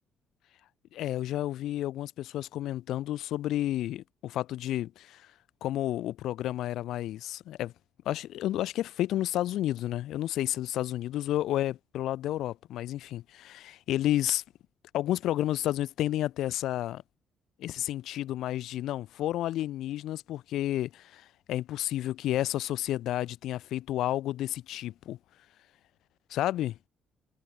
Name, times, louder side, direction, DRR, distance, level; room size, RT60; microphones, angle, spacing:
voice 1, 0.9-5.3 5.6-7.7 8.0-14.4 14.9-17.0 17.6-25.2 26.3-26.8, left 13 dB, 75° left, 6.3 m, -31 dB
supercardioid pair, 70°, 0 cm